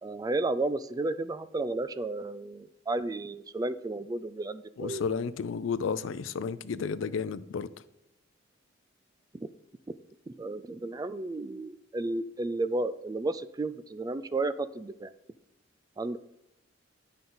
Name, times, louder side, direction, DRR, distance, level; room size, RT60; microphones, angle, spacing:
voice 1, 0.0-5.0 9.3-9.5 10.3-15.1 16.0-16.2, right 2 dB, 20° right, 0.3 m, -33 dB
voice 2, 4.8-7.7, left 5 dB, 80° left, 0.4 m, -32 dB
10.0 x 5.4 x 3.9 m
head